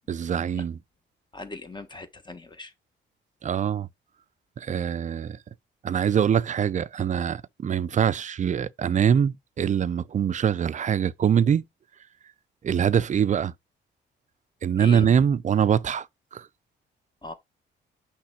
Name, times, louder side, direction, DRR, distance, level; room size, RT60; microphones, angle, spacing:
voice 1, 0.1-0.8 3.4-3.9 4.6-5.4 5.8-11.6 12.6-13.5 14.6-16.1 16.3-16.5, right 8 dB, 40° right, 0.5 m, -23 dB
voice 2, 1.3-2.7 14.8-15.1 17.2-17.3, left 3 dB, 25° left, 1.2 m, -38 dB
5.8 x 3.3 x 5.7 m
cardioid pair, 90°, 20 cm